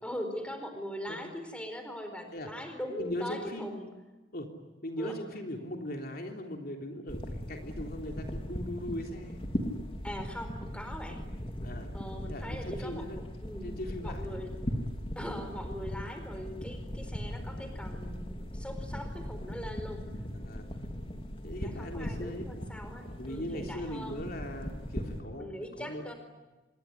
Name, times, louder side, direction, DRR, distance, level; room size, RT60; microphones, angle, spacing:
voice 1, 0.0-3.9 5.0-5.2 10.0-11.2 11.9-13.7 14.0-14.5 15.1-20.1 21.6-24.2 25.4-26.1, equal, 5° left, 7 dB, 4.5 m, -41 dB
voice 2, 2.9-3.8 4.3-4.5 4.8-9.4 11.6-11.9 12.3-13.2 13.6-14.4 14.8-14.9 20.4-20.7 21.4-22.5 23.2-26.0, left 1 dB, 50° left, 3 dB, 3.4 m, -39 dB
sound 1, 7.1-25.2, equal, 30° left, 3.0 m, -39 dB
27.0 x 22.5 x 9.8 m, 1.2 s
head